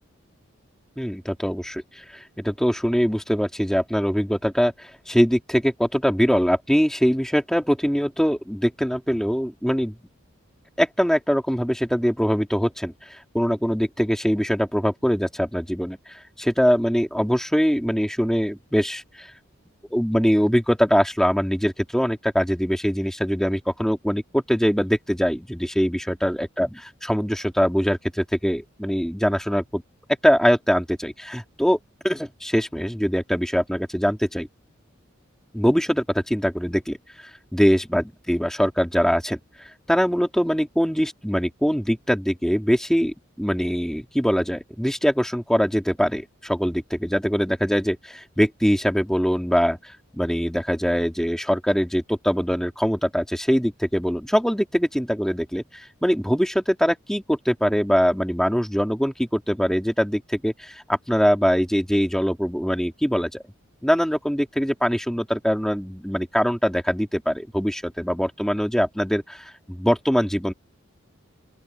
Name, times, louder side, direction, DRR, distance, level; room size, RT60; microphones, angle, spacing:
voice 1, 1.0-10.0 10.8-19.3 19.9-29.8 30.2-31.8 32.0-34.5 35.5-63.4 63.8-70.5, equal, ahead, 2.9 m, -23 dB
open air
head